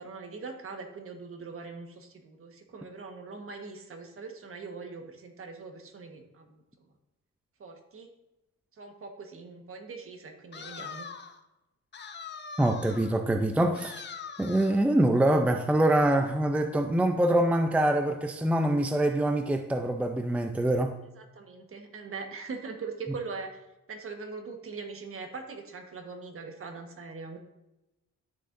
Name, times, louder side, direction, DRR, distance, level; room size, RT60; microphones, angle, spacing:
voice 1, 0.0-6.8 7.6-8.1 8.7-11.1 21.1-27.4, right 4 dB, 45° right, 4 dB, 1.5 m, -42 dB
sound 1, 10.5-11.4 11.9-13.2 13.7-14.8, left 5 dB, 35° left, 0.8 m, -42 dB
voice 2, 12.6-14.0 14.4-20.9, right 1 dB, 5° right, 6 dB, 0.5 m, -25 dB
12.0 x 6.4 x 2.6 m, 0.94 s
cardioid pair, 90°, 30 cm